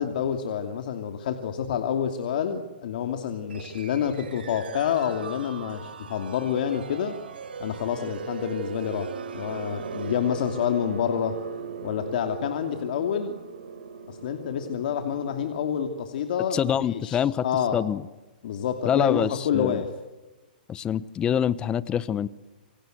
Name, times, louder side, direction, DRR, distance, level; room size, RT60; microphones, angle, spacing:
voice 1, 0.0-7.2 7.6-11.4 11.8-13.3 14.1-17.8 18.4-19.9, left 8 dB, 60° left, 6 dB, 2.7 m, -28 dB
sound 1, 3.5-15.8, right 6 dB, 90° right, 3.4 m, -39 dB
voice 2, 16.5-17.4 17.7-18.0 18.8-19.8 20.7-22.3, left 9 dB, 15° left, 18 dB, 0.8 m, -25 dB
28.0 x 25.0 x 8.0 m, 1.1 s
hypercardioid pair, 155°, 5 cm